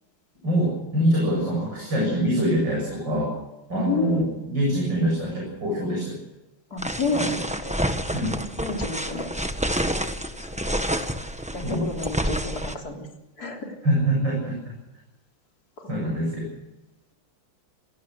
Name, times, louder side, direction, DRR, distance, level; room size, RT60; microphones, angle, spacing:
voice 1, 0.4-3.3 3.7-6.2 7.1-7.4 8.1-8.4 11.6-11.9 13.8-14.6 15.9-16.5, right 1 dB, 65° right, -2 dB, 8.6 m, -24 dB
voice 2, 3.7-4.2 6.7-7.8 8.6-9.3 10.4-10.5 11.5-13.1 13.4-13.8 15.8-16.0, left 3 dB, 50° left, 2 dB, 4.0 m, -30 dB
sound 1, 6.8-12.7, equal, 5° right, 1.0 m, -28 dB
27.5 x 18.0 x 6.6 m, 0.96 s
omnidirectional pair, 2.1 m